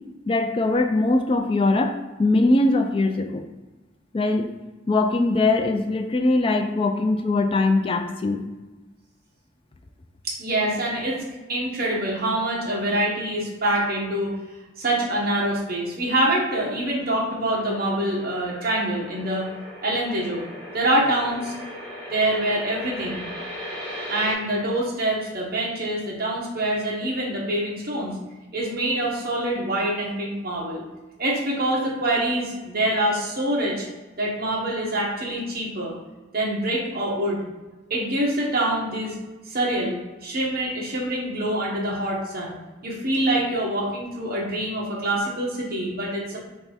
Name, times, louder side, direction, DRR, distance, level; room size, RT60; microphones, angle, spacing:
voice 1, 0.3-3.4 4.1-4.5 4.9-8.5, left 2 dB, 30° left, 5 dB, 0.4 m, -21 dB
voice 2, 10.2-11.2 11.5-14.3 14.8-19.5 19.8-20.4 20.7-21.5 22.1-23.2 24.1-28.2 28.5-30.8 31.2-33.9 34.2-36.0 36.3-37.5 37.9-39.2 39.4-42.6 42.8-46.4, right 1 dB, 55° right, -4 dB, 1.2 m, -25 dB
sound 1, 17.5-24.3, equal, 5° left, 1.4 m, -38 dB
3.5 x 3.3 x 4.0 m, 1.2 s
head